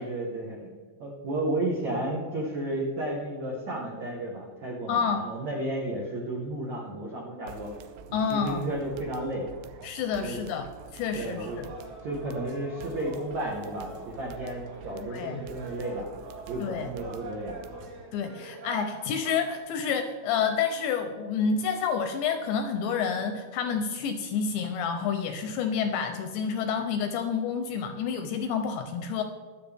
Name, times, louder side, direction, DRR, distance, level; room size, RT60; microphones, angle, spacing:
voice 1, 0.0-7.7 8.1-9.5 10.1-10.4 11.1-11.6 12.0-16.1 16.5-17.6, right 1 dB, 75° right, -2 dB, 1.6 m, -33 dB
voice 2, 4.9-5.2 8.1-8.6 9.8-10.7 10.9-11.7 15.1-15.4 16.6-16.9 18.1-29.2, left 6 dB, 80° left, 7 dB, 2.7 m, -29 dB
sound 1, 7.5-18.1, right 7 dB, 90° right, 2.4 m, -48 dB
sound 2, 11.1-19.6, right 2 dB, 45° right, 3.2 m, -44 dB
22.0 x 7.6 x 3.5 m, 1.5 s
omnidirectional pair, 5.7 m